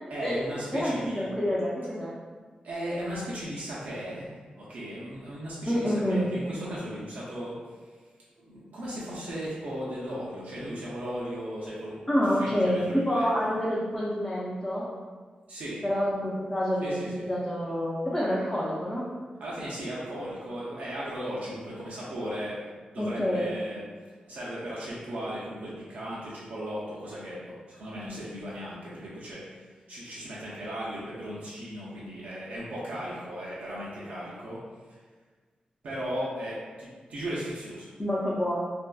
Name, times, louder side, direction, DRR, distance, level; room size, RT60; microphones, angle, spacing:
voice 1, 0.1-1.3 2.6-7.9 8.4-13.5 15.5-15.8 16.8-17.3 19.4-23.9 24.2-34.6 34.9-35.0 35.8-37.9, equal, 85° right, -8 dB, 0.5 m, -36 dB
voice 2, 0.7-2.1 5.7-6.3 12.1-14.8 15.8-19.0 23.0-23.5 38.0-38.6, equal, 15° left, -7 dB, 0.4 m, -27 dB
2.5 x 2.2 x 2.3 m, 1.4 s
wide cardioid pair, 105°, 3 cm